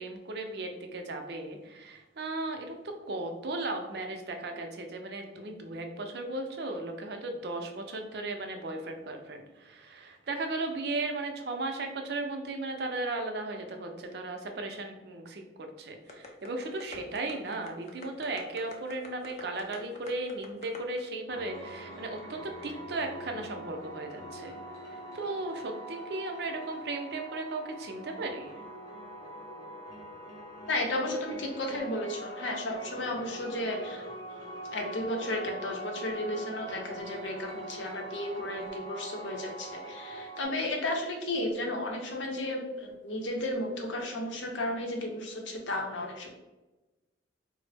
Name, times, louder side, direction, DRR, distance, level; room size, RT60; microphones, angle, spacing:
voice 1, 0.0-24.6 25.1-28.6, right 2 dB, 55° right, 4 dB, 0.4 m, -36 dB
sound 1, 16.1-21.0, left 3 dB, 35° left, 0.4 m, -46 dB
sound 2, 21.3-40.5, right 1 dB, 20° left, 0.8 m, -43 dB
voice 2, 30.7-34.0 34.7-46.3, left 1 dB, 80° left, 1 dB, 0.7 m, -33 dB
3.6 x 2.0 x 3.3 m, 1.1 s
head